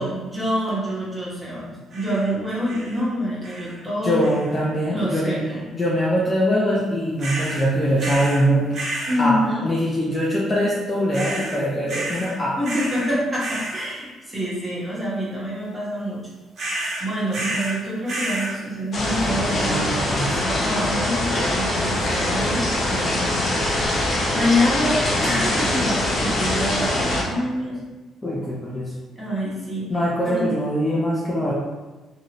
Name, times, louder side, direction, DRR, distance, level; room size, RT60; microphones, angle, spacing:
voice 1, 0.0-4.3 4.9-5.7 9.1-9.7 12.6-16.2 17.0-23.5 23.8-27.8 29.1-29.9 30.2-30.5, equal, 10° right, -8 dB, 1.2 m, -26 dB
sound 1, 1.9-2.3 2.6-3.0 3.4-3.8 4.2-4.6 7.2-7.6 8.0-8.4 8.7-9.2 11.1-11.6 11.9-12.3 12.6-13.1 13.4-13.8 16.6-17.8 18.1-18.6, right 2 dB, 45° right, 1.0 m, -30 dB
voice 2, 4.0-5.4 5.7-8.7 9.2-9.4 9.6-12.6 19.5-20.3 28.2-28.9 29.9-31.5, equal, 20° left, -5 dB, 0.5 m, -22 dB
sound 2, 18.9-27.2, left 1 dB, 50° left, 0.8 m, -23 dB
2.7 x 2.7 x 2.9 m, 1.2 s
cardioid pair, 105°, 0 cm